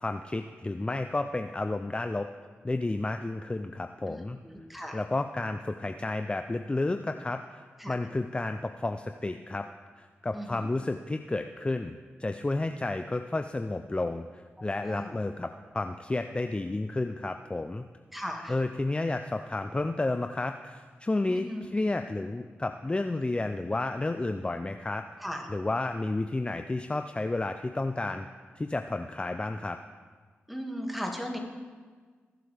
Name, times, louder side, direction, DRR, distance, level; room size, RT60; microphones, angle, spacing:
voice 1, 0.0-2.3 2.6-4.4 4.9-7.6 7.9-9.6 10.0-15.5 15.7-17.8 18.5-25.0 25.5-28.3 28.6-29.8, left 2 dB, 25° left, 7 dB, 0.5 m, -31 dB
voice 2, 4.1-5.0 7.8-7.9 10.3-10.7 14.8-15.2 18.1-18.6 21.3-21.6 25.2-25.5 30.5-31.4, equal, ahead, 1 dB, 2.2 m, -37 dB
19.5 x 7.6 x 3.5 m, 1.5 s
cardioid pair, 50°, 5 cm